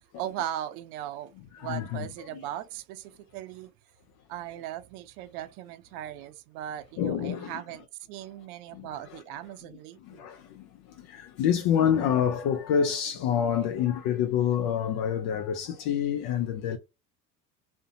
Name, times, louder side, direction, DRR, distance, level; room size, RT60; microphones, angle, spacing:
voice 1, 0.2-3.7 4.3-10.2, right 12 dB, 60° right, 0.5 m, -38 dB
voice 2, 1.5-2.5 7.0-7.6 8.7-9.2 10.0-16.8, left 8 dB, 50° left, 0.5 m, -28 dB
2.5 x 2.1 x 2.6 m
hypercardioid pair, 75°, 49 cm